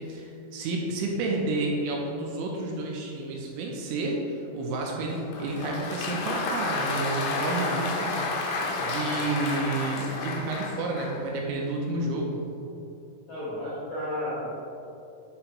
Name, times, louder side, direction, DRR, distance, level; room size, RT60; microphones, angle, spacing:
voice 1, 0.0-8.4 8.8-12.4, right 2 dB, 80° right, 0 dB, 2.5 m, -30 dB
Applause, 5.1-11.3, left 3 dB, 90° left, 1.9 m, -31 dB
voice 2, 13.3-14.4, left 1 dB, 70° left, -9 dB, 1.4 m, -32 dB
8.4 x 4.3 x 2.9 m, 2.7 s
omnidirectional pair, 5.0 m